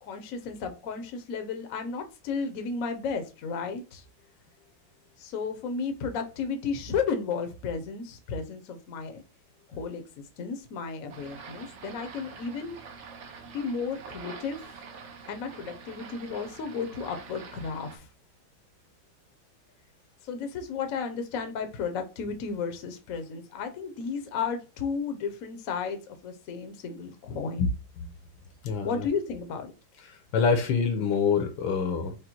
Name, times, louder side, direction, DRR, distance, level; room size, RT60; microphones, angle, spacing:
voice 1, 0.0-4.0 5.2-9.2 9.7-10.0 10.4-12.8 13.5-14.6 15.3-18.1 20.2-27.7 28.8-29.7, left 5 dB, 55° left, 1.0 m, -33 dB
sound 1, 11.1-18.0, right 5 dB, 65° right, 0.7 m, -46 dB
voice 2, 28.6-29.1 30.1-32.1, left 5 dB, 75° left, 1.6 m, -26 dB
5.2 x 2.2 x 4.4 m
omnidirectional pair, 2.2 m